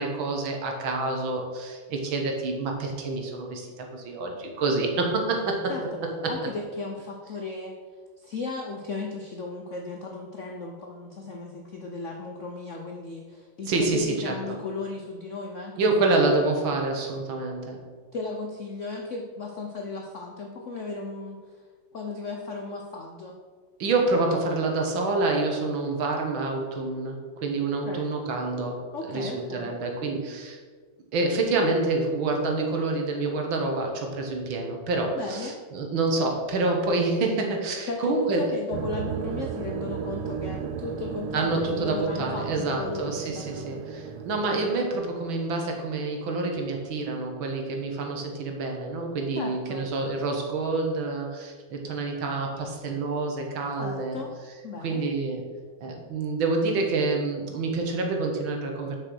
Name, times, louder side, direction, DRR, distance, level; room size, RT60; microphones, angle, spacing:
voice 1, 0.0-5.7 6.2-6.3 13.7-14.6 15.8-17.8 23.8-30.6 31.1-38.6 41.3-54.2 54.8-55.4 55.8-59.0, right 3 dB, 70° right, 2 dB, 2.0 m, -27 dB
voice 2, 6.3-7.7 8.2-16.4 18.1-21.4 21.9-23.4 27.9-28.1 28.9-29.7 35.2-35.6 37.9-43.8 49.4-49.9 53.8-54.3 54.6-55.0, left 3 dB, 70° left, 2 dB, 0.7 m, -35 dB
sound 1, 38.7-44.7, right 7 dB, 85° right, 1.5 m, -35 dB
6.7 x 5.8 x 6.3 m, 1.5 s
omnidirectional pair, 2.3 m